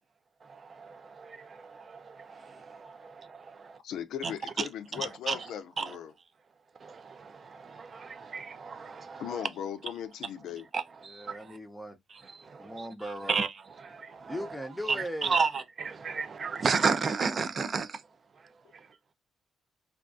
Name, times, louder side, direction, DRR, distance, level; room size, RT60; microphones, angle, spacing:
voice 1, 0.8-3.4 3.6-3.7 4.2-4.3 5.3-5.4 5.8-5.9 6.8-9.2 10.7-11.4 12.3-12.8 13.3-13.5 13.8-14.3 15.2-17.9, right 5 dB, 45° right, 0.3 m, -32 dB
voice 2, 3.8-6.1 9.2-10.7, left 9 dB, 80° left, 0.3 m, -38 dB
voice 3, 11.0-12.0 12.6-13.4 14.3-15.4, equal, 5° left, 0.6 m, -38 dB
2.3 x 2.2 x 2.4 m
cardioid pair, 90°, 0 cm